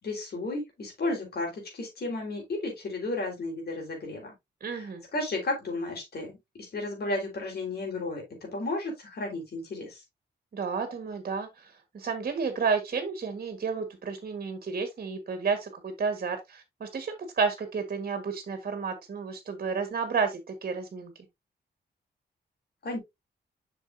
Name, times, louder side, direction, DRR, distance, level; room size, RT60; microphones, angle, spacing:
voice 1, 0.0-4.3 4.7-6.4 6.7-8.2 8.5-10.0 22.8-23.0, left 2 dB, 60° left, 4.3 m, -33 dB
voice 2, 4.6-5.0 10.5-21.1, right 5 dB, 55° right, 1.6 m, -31 dB
7.4 x 6.1 x 2.7 m
wide cardioid pair, 145°, 18 cm